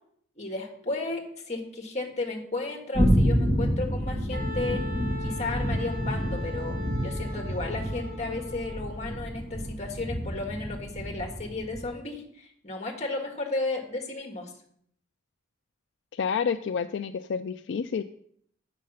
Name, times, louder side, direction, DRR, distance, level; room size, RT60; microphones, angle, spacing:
voice 1, 0.4-4.8 5.2-6.8 7.0-14.5, left 2 dB, 35° left, 2 dB, 1.5 m, -34 dB
sound 1, 2.9-11.9, equal, 25° right, 2.2 m, -28 dB
Wind instrument woodwind instrument, 4.3-9.0, left 2 dB, 45° right, 1.2 m, -41 dB
voice 2, 16.1-18.0, left 6 dB, 60° left, 8 dB, 0.3 m, -29 dB
8.3 x 6.3 x 5.6 m, 0.67 s
head